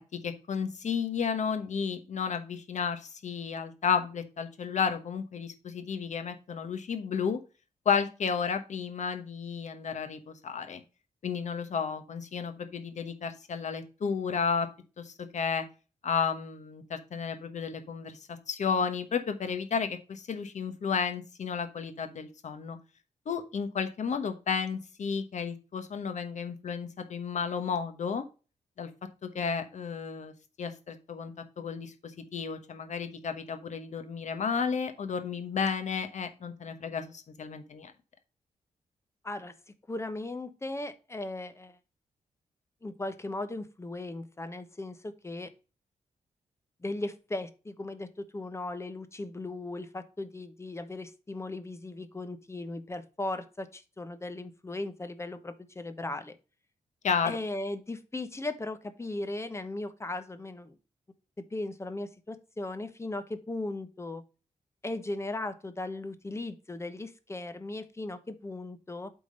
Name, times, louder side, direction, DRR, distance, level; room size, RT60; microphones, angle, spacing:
voice 1, 0.0-7.4 7.8-10.8 11.2-14.7 15.0-15.6 16.0-22.8 23.3-28.2 28.8-28.9 29.2-37.9 57.0-57.4, left 6 dB, 60° left, 8 dB, 1.2 m, -32 dB
voice 2, 39.9-41.8 42.8-45.5 46.8-48.1 48.3-56.4 57.2-60.8 61.5-64.2 64.8-69.1, left 2 dB, 20° left, 10 dB, 0.9 m, -37 dB
8.4 x 3.9 x 5.2 m, 0.33 s
wide cardioid pair, 110°, 14 cm